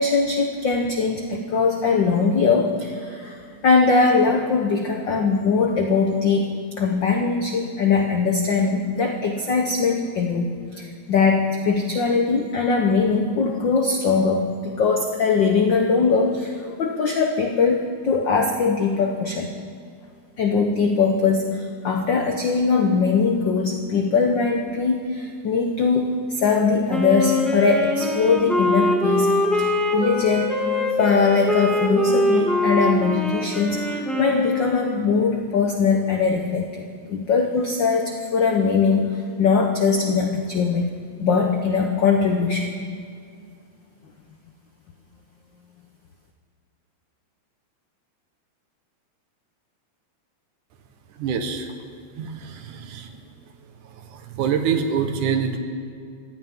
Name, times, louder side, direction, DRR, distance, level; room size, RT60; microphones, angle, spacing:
voice 1, 0.0-3.4 3.6-6.5 6.8-19.5 20.4-30.6 31.0-36.8 37.1-40.9 41.2-42.8, left 4 dB, 85° left, 3 dB, 1.0 m, -21 dB
Wind instrument woodwind instrument, 26.9-35.0, left 1 dB, ahead, 1.2 m, -23 dB
voice 2, 51.1-51.7 52.2-53.3 53.6-55.6, right 7 dB, 85° right, 6 dB, 2.7 m, -26 dB
25.0 x 16.0 x 3.7 m, 2.3 s
omnidirectional pair, 3.4 m